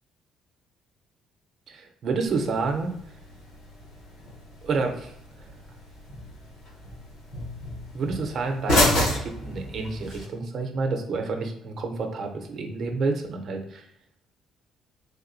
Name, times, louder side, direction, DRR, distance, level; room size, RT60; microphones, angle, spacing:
voice 1, 1.7-2.9 4.6-5.1 5.4-5.5 7.9-13.9, right 4 dB, 55° right, 4 dB, 0.6 m, -29 dB
sound 1, 2.2-10.2, left 1 dB, 75° left, 1.0 m, -30 dB
3.5 x 2.7 x 2.6 m, 0.74 s
cardioid pair, 90°, 0 cm